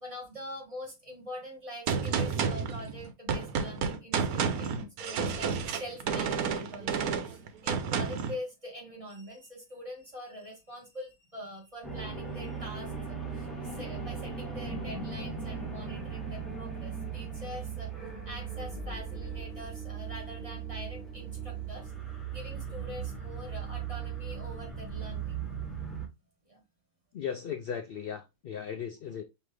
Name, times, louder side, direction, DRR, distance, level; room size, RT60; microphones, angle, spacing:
voice 1, 0.0-17.9 18.2-21.9 22.3-25.5 26.4-26.6, equal, 25° right, 1.7 m, -44 dB
Gunshot gunfire, 1.9-8.4, right 6 dB, 85° right, 1.2 m, -30 dB
sound 1, 11.8-26.1, right 6 dB, ahead, 0.9 m, -38 dB
voice 2, 27.1-29.2, left 8 dB, 75° left, 0.5 m, -37 dB
5.3 x 2.9 x 3.2 m
omnidirectional pair, 1.5 m